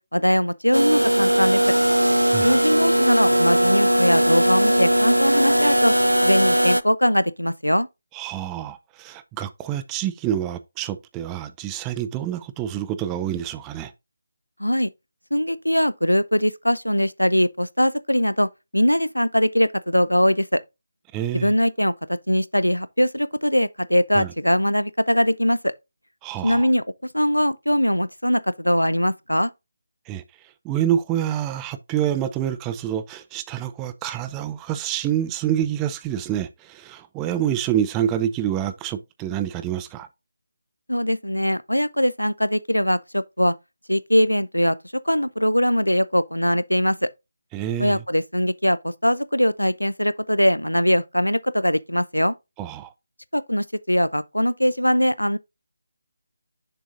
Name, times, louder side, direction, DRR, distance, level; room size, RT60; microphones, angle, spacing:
voice 1, 0.0-1.6 2.4-5.9 6.2-7.9 14.6-14.9 15.3-20.6 21.3-25.7 26.4-26.8 27.1-29.5 40.9-43.5 43.9-44.8 45.1-47.1 47.8-52.3 53.3-55.4, equal, 90° left, 0.5 m, -21 dB
sound 1, 0.7-6.8, right 1 dB, 90° right, 0.4 m, -19 dB
voice 2, 2.3-2.6 8.1-13.9 21.1-21.5 24.1-24.3 26.2-26.7 30.1-30.2 30.6-40.1 47.5-48.0 52.6-52.9, right 10 dB, 15° right, 0.4 m, -27 dB
6.7 x 6.2 x 2.6 m
figure-of-eight pair, 155°, 0 cm